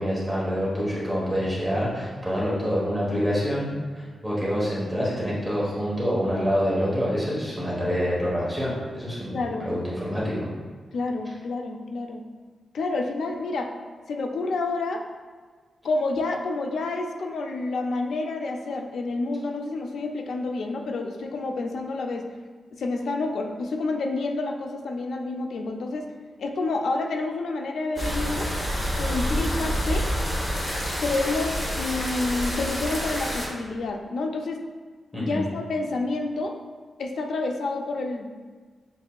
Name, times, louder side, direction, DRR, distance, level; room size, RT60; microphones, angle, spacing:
voice 1, 0.0-10.5 35.1-35.4, equal, 5° right, -7 dB, 1.0 m, -26 dB
voice 2, 9.3-9.7 10.9-12.2 12.7-13.7 14.1-15.0 15.8-22.2 22.7-26.1 26.4-28.5 29.0-30.1 31.0-34.7 35.1-36.5 37.0-38.3, left 3 dB, 80° left, 4 dB, 0.4 m, -29 dB
sound 1, 28.0-33.5, equal, 25° left, 0.9 m, -28 dB
7.4 x 2.8 x 2.3 m, 1.5 s
wide cardioid pair, 145°, 0 cm